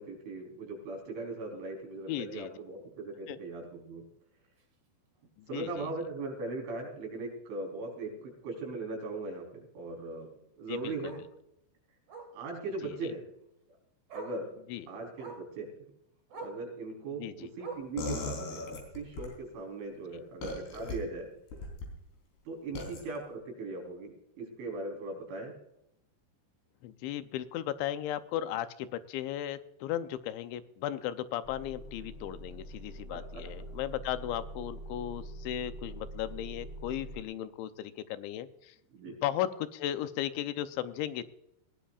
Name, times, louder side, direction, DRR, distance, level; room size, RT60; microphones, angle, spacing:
voice 1, 0.0-4.0 5.5-10.3 10.5-11.2 12.3-13.2 14.1-14.5 14.9-15.7 16.3-18.7 18.9-21.3 22.5-25.5 33.1-33.4 38.9-39.2, right 3 dB, 80° right, 2 dB, 6.4 m, -39 dB
voice 2, 2.1-2.5 3.3-3.4 5.4-5.9 10.7-10.9 12.8-13.0 14.7-14.9 17.2-17.5 22.8-22.9 26.8-38.8 39.1-41.3, left 12 dB, 80° left, 11 dB, 3.0 m, -36 dB
Bark, 4.6-4.7 5.1-5.3 5.6-5.7 6.0-6.1 7.5-7.6 10.1-10.2 11.0-11.3 12.1-12.4 13.6-13.7 14.1-14.4 15.2-15.5 16.3-16.6 17.6-18.0 19.0-19.1, right 4 dB, 45° right, 2.3 m, -44 dB
sound 1, 18.0-19.3 20.4-21.0 21.5-21.9 22.8-23.0, left 2 dB, 60° left, 5.7 m, -37 dB
Motor vehicle (road) / Engine starting / Idling, 31.4-37.2, right 1 dB, 10° left, 4.3 m, -44 dB
20.0 x 17.0 x 2.4 m, 0.80 s
omnidirectional pair, 5.4 m